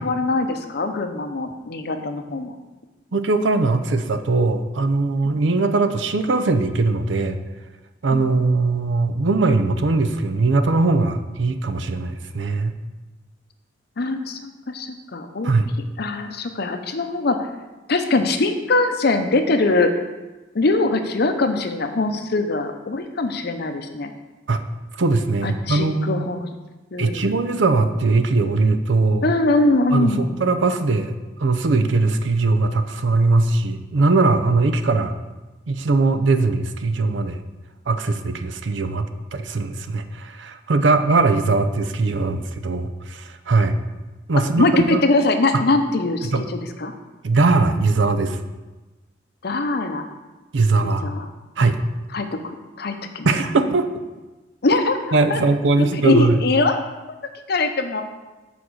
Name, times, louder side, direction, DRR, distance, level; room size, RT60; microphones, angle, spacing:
voice 1, 0.0-2.5 5.4-5.6 8.1-8.3 14.0-15.5 16.0-17.5 17.9-20.0 20.5-24.1 25.4-26.5 26.9-27.2 29.2-30.3 44.6-46.9 49.4-50.1 50.8-51.3 52.1-53.3 54.6-55.0 55.3-55.4 55.8-56.8 57.5-58.0, left 2 dB, 60° left, 7 dB, 0.7 m, -22 dB
voice 2, 3.1-7.4 8.0-12.7 15.4-15.7 24.5-24.6 25.0-26.3 27.0-29.3 29.9-31.1 31.4-35.1 35.7-37.4 37.9-43.8 44.3-45.0 46.2-46.4 47.2-48.4 50.5-51.1 51.6-51.8 53.2-53.9 55.1-56.4, right 3 dB, 75° right, 9 dB, 0.6 m, -20 dB
7.1 x 4.3 x 6.2 m, 1.2 s
head